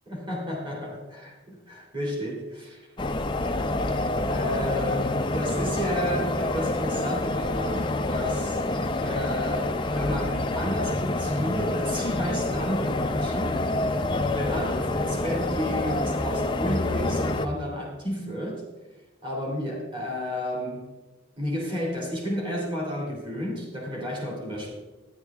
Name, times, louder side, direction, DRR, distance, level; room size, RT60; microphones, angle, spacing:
voice 1, 0.1-2.9 4.3-8.6 9.0-13.7 14.3-18.6 19.2-20.9 21.4-24.7, equal, 25° right, -1 dB, 2.5 m, -31 dB
sound 1, 3.0-17.5, left 2 dB, 25° left, 0.5 m, -27 dB
13.0 x 10.5 x 3.5 m, 1.1 s
head